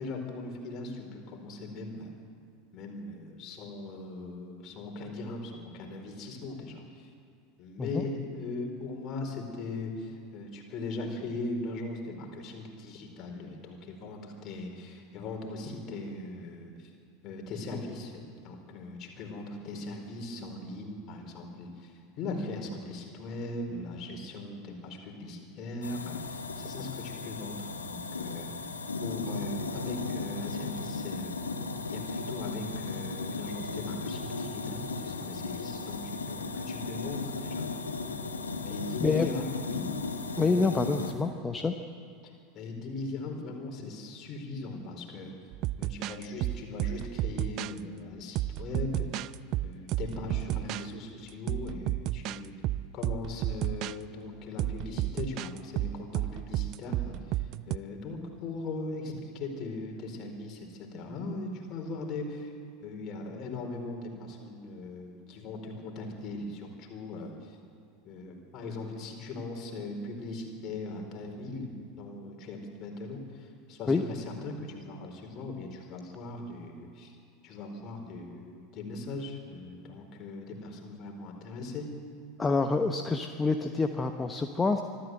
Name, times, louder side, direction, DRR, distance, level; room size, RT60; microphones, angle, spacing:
voice 1, 0.0-2.1 2.7-7.1 7.6-16.9 17.2-28.7 29.0-31.3 31.9-37.6 38.6-39.9 42.2-45.3 45.8-49.1 49.6-52.5 52.9-62.5 62.8-67.6 68.0-77.2 77.4-81.9, left 2 dB, 40° left, 2 dB, 4.3 m, -39 dB
sound 1, 25.8-41.1, left 3 dB, 80° left, 1.6 m, -36 dB
voice 2, 40.4-41.7 73.9-74.0 82.4-84.8, left 4 dB, 15° left, 6 dB, 1.0 m, -27 dB
sound 2, 45.5-47.8 48.3-50.9 51.5-52.4 52.6-53.9 54.6-57.8, right 15 dB, 45° right, 0.4 m, -32 dB
24.5 x 13.5 x 7.9 m, 2.3 s
figure-of-eight pair, 80°, 0 cm